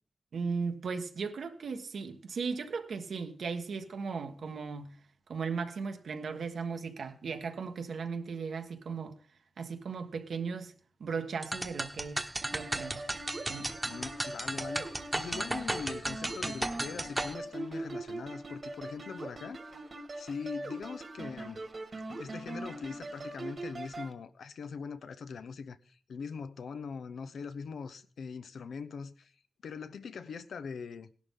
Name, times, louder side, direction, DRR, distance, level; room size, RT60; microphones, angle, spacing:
voice 1, 0.3-5.0 5.3-9.2 9.6-10.7 11.0-12.2 12.5-13.0 13.5-13.7, right 5 dB, 80° right, 1.5 m, -37 dB
sound 1, 11.4-17.3, right 1 dB, 20° right, 1.2 m, -35 dB
sound 2, 12.4-24.1, right 2 dB, 50° right, 1.7 m, -42 dB
voice 2, 13.8-19.8 20.2-21.6 22.1-29.3 29.6-31.1, left 5 dB, 90° left, 0.7 m, -42 dB
17.5 x 11.5 x 3.7 m
wide cardioid pair, 95°, 0 cm